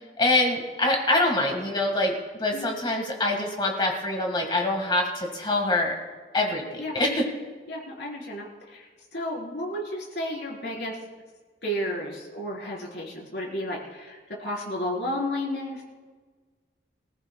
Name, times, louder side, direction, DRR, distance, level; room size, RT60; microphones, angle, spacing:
voice 1, 0.2-5.9 6.3-7.3, left 2 dB, 25° left, 1 dB, 1.7 m, -25 dB
voice 2, 7.7-8.9 9.1-11.0 11.6-15.8, left 1 dB, 75° left, -3 dB, 4.0 m, -32 dB
24.5 x 15.0 x 2.3 m, 1.4 s
head